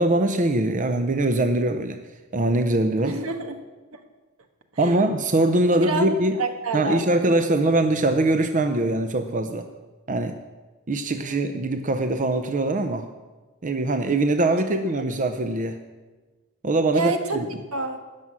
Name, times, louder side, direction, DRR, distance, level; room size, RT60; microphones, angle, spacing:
voice 1, 0.0-2.0 2.3-3.1 4.8-6.3 6.7-9.7 10.1-10.4 10.9-13.1 13.6-15.8 16.6-17.5, right 2 dB, 35° right, 7 dB, 0.7 m, -22 dB
voice 2, 3.0-3.6 4.8-5.0 5.7-7.4 7.7-7.8 11.2-11.5 15.0-15.1 16.9-17.4 17.7-18.0, right 3 dB, 75° right, 5 dB, 1.5 m, -28 dB
13.0 x 6.2 x 9.7 m, 1.2 s
head